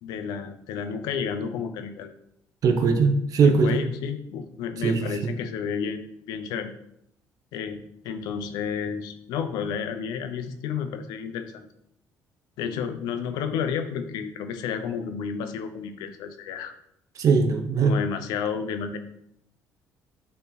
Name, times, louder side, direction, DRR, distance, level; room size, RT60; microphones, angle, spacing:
voice 1, 0.0-2.1 3.4-6.0 6.3-6.7 7.5-11.7 12.6-16.7 17.8-19.0, left 7 dB, 85° left, 8 dB, 0.8 m, -31 dB
voice 2, 2.6-3.8 4.8-5.3 17.2-18.0, right 5 dB, 60° right, 6 dB, 1.1 m, -21 dB
8.5 x 4.5 x 4.1 m, 0.75 s
cardioid pair, 95°, 7 cm